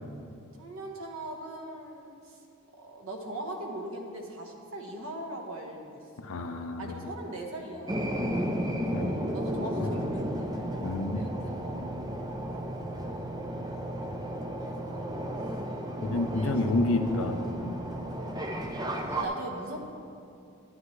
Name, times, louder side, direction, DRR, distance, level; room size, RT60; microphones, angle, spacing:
voice 1, 0.6-2.4 2.8-6.3 6.8-8.4 9.3-10.5 11.1-11.8 12.5-13.0 14.6-15.1 16.0-16.5 18.4-19.8, right 1 dB, 65° right, 1 dB, 1.1 m, -40 dB
voice 2, 6.2-7.0 8.9-9.1 9.6-9.9 10.8-11.2 16.0-17.8, left 2 dB, 65° left, 7 dB, 0.6 m, -29 dB
sound 1, 7.9-19.2, right 1 dB, 15° right, 0.5 m, -33 dB
11.0 x 9.5 x 3.2 m, 2.6 s
head